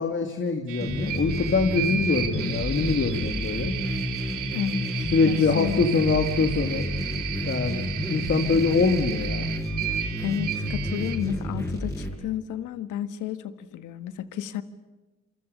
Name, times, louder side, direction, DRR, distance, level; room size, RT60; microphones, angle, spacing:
voice 1, 0.0-3.8 5.1-9.5, left 4 dB, 40° left, 2.7 m, -24 dB
sound 1, 0.7-11.2, right 10 dB, 85° right, 3.2 m, -34 dB
sound 2, 0.8-12.1, equal, 10° left, 7.3 m, -31 dB
voice 2, 4.5-5.8 10.2-14.6, left 9 dB, 85° left, 1.7 m, -32 dB
27.5 x 24.5 x 7.0 m
cardioid pair, 90°, 30 cm